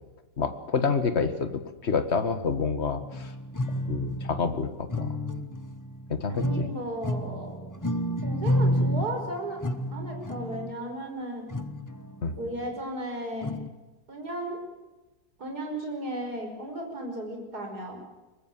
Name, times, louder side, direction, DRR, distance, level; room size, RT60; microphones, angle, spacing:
voice 1, 0.4-3.3 3.9-5.1 6.1-6.7 12.2-12.4, left 5 dB, 35° left, 9 dB, 1.8 m, -28 dB
sound 1, 3.0-4.4 4.9-6.7 7.0-10.7 11.5-12.2 13.4-13.7, equal, 15° left, 0.8 m, -30 dB
voice 2, 6.3-7.7 8.2-9.6 9.9-11.5 12.4-13.5 14.1-14.6 15.4-18.0, right 1 dB, 55° right, 3 dB, 6.0 m, -35 dB
23.0 x 20.0 x 7.6 m, 1.1 s
omnidirectional pair, 2.0 m